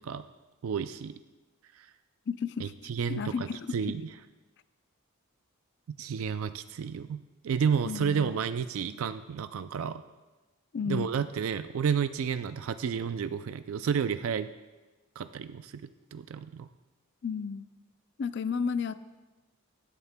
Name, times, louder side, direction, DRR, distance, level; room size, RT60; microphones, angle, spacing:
voice 1, 0.6-1.2 1.7-1.9 2.6-3.5 3.7-4.1 5.9-10.0 10.9-14.5 15.2-16.7, right 7 dB, 75° right, 11 dB, 0.3 m, -31 dB
voice 2, 2.3-2.7 3.1-4.0 7.8-8.4 10.7-11.1 17.2-17.7 18.2-19.1, left 6 dB, 50° left, 13 dB, 0.4 m, -33 dB
16.5 x 11.5 x 2.2 m, 1.2 s
head